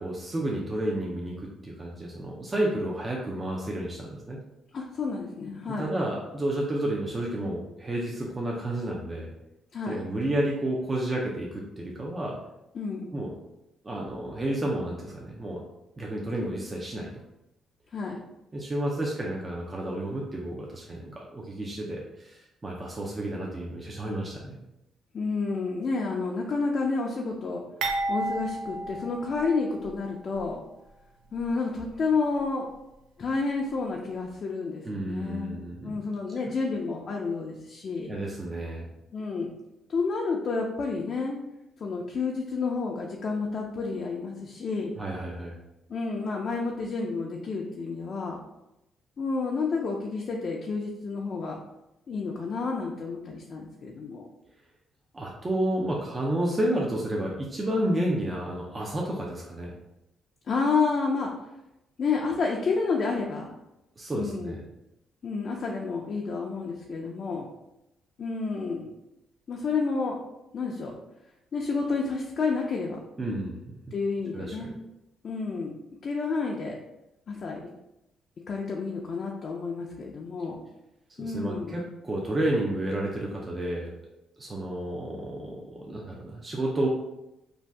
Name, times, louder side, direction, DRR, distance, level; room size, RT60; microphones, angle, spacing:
voice 1, 0.0-4.4 5.8-9.3 9.9-12.4 13.1-13.3 13.8-15.6 16.0-17.1 18.5-24.6 34.8-36.0 38.1-38.9 45.0-45.6 55.1-59.7 64.0-64.6 73.2-73.8 74.3-74.7 81.2-83.9 84.4-86.9, right 1 dB, 25° right, -3 dB, 0.5 m, -31 dB
voice 2, 4.7-5.9 9.7-10.0 12.7-13.1 17.9-18.2 25.1-27.6 28.1-30.6 31.3-32.7 33.2-38.1 39.1-39.5 39.9-41.4 41.8-45.0 45.9-48.4 49.2-51.6 52.1-54.3 60.5-61.3 62.0-63.5 64.1-64.6 65.2-67.5 68.2-68.9 69.5-70.2 70.5-70.9 71.5-73.0 73.9-74.7 75.2-75.7 76.0-76.8 77.3-77.7 78.5-80.6 81.2-81.8, left 4 dB, 50° left, -1 dB, 0.4 m, -30 dB
sound 1, 27.8-30.0 30.3-30.5 31.4-31.5, right 2 dB, 80° right, 0.5 m, -32 dB
2.6 x 2.2 x 3.3 m, 0.91 s
cardioid pair, 90°, 0 cm